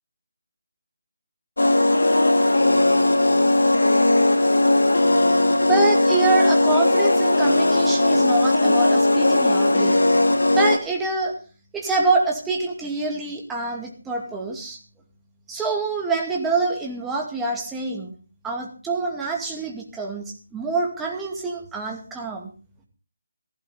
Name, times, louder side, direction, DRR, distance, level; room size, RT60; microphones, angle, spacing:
sound 1, 1.6-10.8, left 2 dB, 75° left, 2.5 m, -18 dB
voice 1, 5.6-10.0 10.5-11.3 11.7-14.8 15.5-18.1 18.4-22.5, right 3 dB, 5° right, -1 dB, 2.4 m, -26 dB
16.0 x 15.5 x 4.0 m, 0.35 s
figure-of-eight pair, 155°, 0 cm